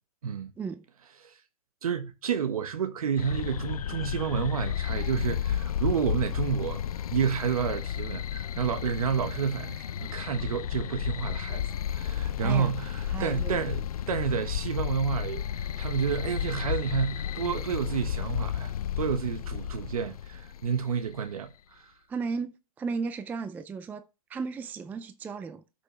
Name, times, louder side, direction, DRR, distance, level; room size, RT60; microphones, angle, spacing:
voice 1, 1.8-6.8 7.1-11.6 11.9-21.9, right 7 dB, 80° right, 1.3 m, -30 dB
sound 1, 3.2-21.1, left 9 dB, 85° left, 0.6 m, -32 dB
voice 2, 12.4-12.8 13.1-13.7 22.1-24.0 24.3-25.6, right 5 dB, 10° right, 0.4 m, -35 dB
12.5 x 6.1 x 3.2 m
hypercardioid pair, 135°, 18 cm